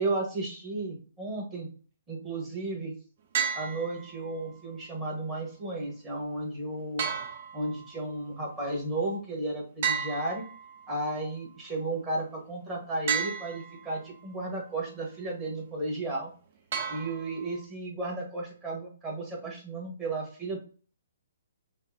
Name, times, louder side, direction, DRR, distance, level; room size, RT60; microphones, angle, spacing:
voice 1, 0.0-1.7 2.1-2.9 3.5-7.1 7.5-10.5 10.9-16.3 16.9-20.6, right 2 dB, 20° right, -3 dB, 1.5 m, -33 dB
sound 1, 3.3-4.4 7.0-8.1 9.8-11.1 13.1-14.0 16.7-17.6, right 7 dB, 50° right, 0.7 m, -33 dB
5.2 x 2.2 x 2.8 m, 0.39 s
figure-of-eight pair, 130°, 0 cm